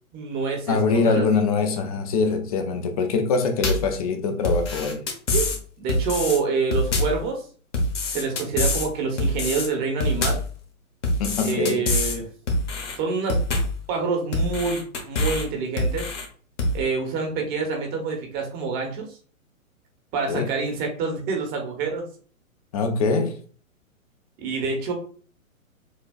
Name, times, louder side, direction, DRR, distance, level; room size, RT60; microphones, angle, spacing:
voice 1, 0.1-1.4 5.3-7.4 8.1-10.4 11.4-12.3 13.0-13.4 13.9-16.1 16.7-19.2 20.1-22.0 24.4-24.9, right 4 dB, 25° right, 0.9 m, -27 dB
voice 2, 0.7-5.0 11.2-11.9 20.3-20.5 22.7-23.4, left 4 dB, 30° left, 0.5 m, -23 dB
sound 1, 3.6-3.9 4.4-5.6 5.9-6.4 6.7-7.2 7.7-8.9 9.2-9.7 10.0-10.5 11.0-12.2 12.5-13.0 13.3-13.8 14.3-15.4 15.8-16.2 16.6-16.8, left 1 dB, 60° left, 1.3 m, -25 dB
6.3 x 2.4 x 2.4 m
figure-of-eight pair, 125°, 41 cm